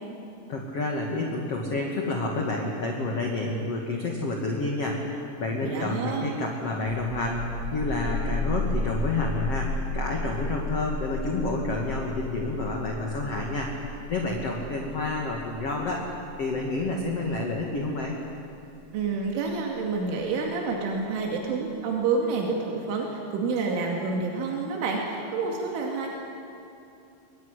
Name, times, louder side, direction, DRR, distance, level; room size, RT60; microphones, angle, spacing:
voice 1, 0.5-13.7 14.1-16.0 16.4-18.2, left 2 dB, 40° left, 0 dB, 2.5 m, -29 dB
voice 2, 5.6-6.4 18.9-26.1, right 4 dB, 85° right, 0 dB, 4.8 m, -28 dB
sound 1, 6.8-20.1, left 2 dB, 30° right, 7.8 m, -34 dB
24.0 x 23.0 x 10.0 m, 2.7 s
omnidirectional pair, 5.4 m